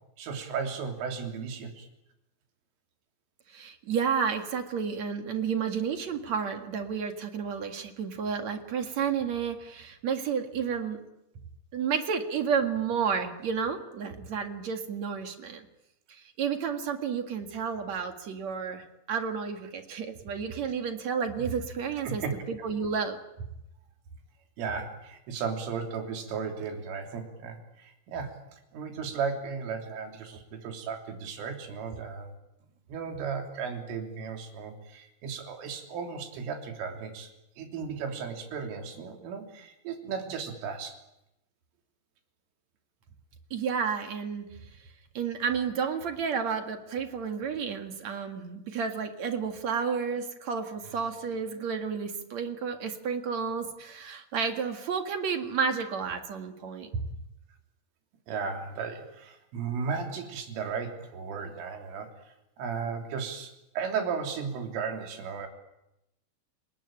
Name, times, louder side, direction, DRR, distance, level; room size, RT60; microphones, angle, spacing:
voice 1, 0.2-1.9 22.0-22.7 24.6-28.4 28.7-32.3 32.9-37.3 37.6-41.0 58.3-62.1 62.6-65.5, right 6 dB, 80° right, 3 dB, 5.8 m, -35 dB
voice 2, 3.5-11.0 11.7-15.7 16.1-23.2 43.5-44.5 45.1-56.9, right 6 dB, 50° right, 5 dB, 2.2 m, -31 dB
29.5 x 20.0 x 8.9 m, 0.88 s
omnidirectional pair, 5.7 m